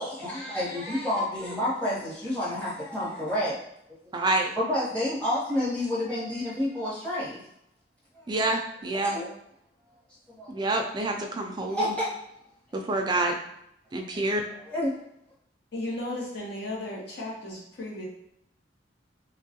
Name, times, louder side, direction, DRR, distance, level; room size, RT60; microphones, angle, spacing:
voice 1, 0.0-3.6 4.6-7.4 8.1-8.2 8.9-9.3 10.3-10.5 11.7-12.1 14.5-14.9, left 1 dB, 5° left, -9 dB, 0.9 m, -29 dB
voice 2, 4.1-4.5 8.3-9.2 10.5-11.9 12.7-13.4 13.9-14.4, right 2 dB, 25° right, 3 dB, 0.3 m, -27 dB
voice 3, 15.7-18.1, left 1 dB, 60° left, -4 dB, 0.9 m, -35 dB
3.0 x 2.2 x 2.7 m, 0.77 s
head